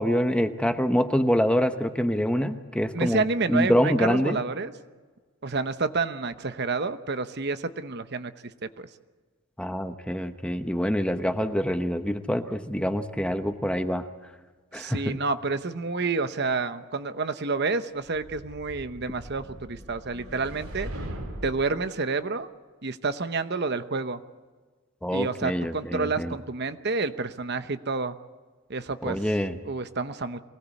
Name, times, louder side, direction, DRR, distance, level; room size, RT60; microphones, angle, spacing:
voice 1, 0.0-3.2 3.5-4.4 9.6-14.0 14.7-15.2 25.0-26.3 29.0-29.6, equal, 5° left, 8 dB, 0.9 m, -25 dB
voice 2, 2.9-4.7 5.4-8.3 8.8-8.9 14.7-20.9 21.4-22.5 22.8-24.2 25.1-28.1 28.7-29.2 29.6-30.4, right 4 dB, 50° right, 11 dB, 0.9 m, -29 dB
sound 1, 18.0-21.7, equal, 90° right, 4.4 m, -40 dB
23.5 x 18.0 x 8.4 m, 1.4 s
head